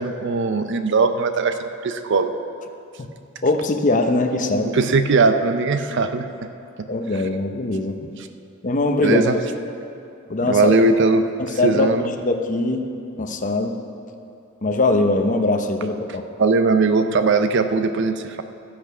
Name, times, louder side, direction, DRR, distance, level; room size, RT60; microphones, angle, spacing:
voice 1, 0.0-2.3 4.7-6.2 9.0-9.3 10.4-11.2 11.6-12.0 16.4-18.4, right 3 dB, 60° right, 9 dB, 0.6 m, -19 dB
voice 2, 3.4-4.8 6.9-8.0 8.6-9.4 10.3-10.8 11.6-11.9 12.2-12.8 13.2-13.8 14.6-16.2, left 2 dB, 40° left, 5 dB, 0.8 m, -21 dB
13.0 x 8.6 x 5.5 m, 2.6 s
head